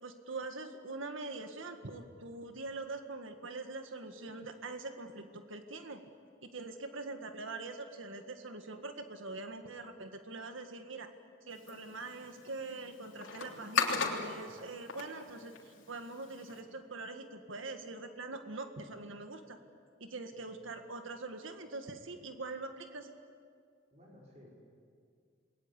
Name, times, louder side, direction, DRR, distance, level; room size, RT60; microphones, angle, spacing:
voice 1, 0.0-6.0 6.4-11.1 11.5-19.6 20.0-23.1, right 3 dB, 85° right, 6 dB, 1.8 m, -43 dB
sound 1, 11.5-16.6, left 5 dB, 85° left, 3.3 m, -38 dB
voice 2, 20.3-20.7 23.9-24.5, left 1 dB, 35° right, -3 dB, 5.3 m, -58 dB
28.5 x 21.5 x 8.3 m, 2.2 s
head